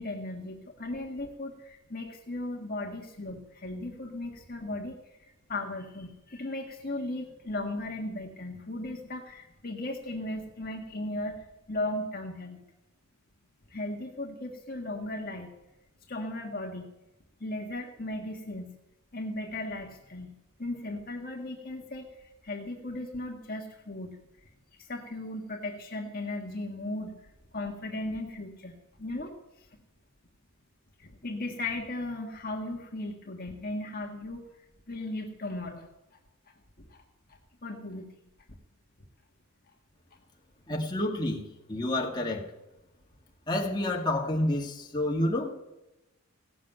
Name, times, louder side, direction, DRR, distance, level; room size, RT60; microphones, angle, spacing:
voice 1, 0.0-12.6 13.7-15.5 16.1-16.9 17.4-18.7 19.1-20.3 20.6-24.5 24.8-27.2 27.5-29.8 31.0-34.4 34.9-35.9 36.9-37.0 37.3-38.1, left 2 dB, 40° left, 0 dB, 1.6 m, -37 dB
voice 2, 40.7-41.4 41.7-42.4 43.5-45.5, left 1 dB, 20° left, -1 dB, 2.1 m, -29 dB
16.5 x 7.7 x 9.0 m, 0.97 s
head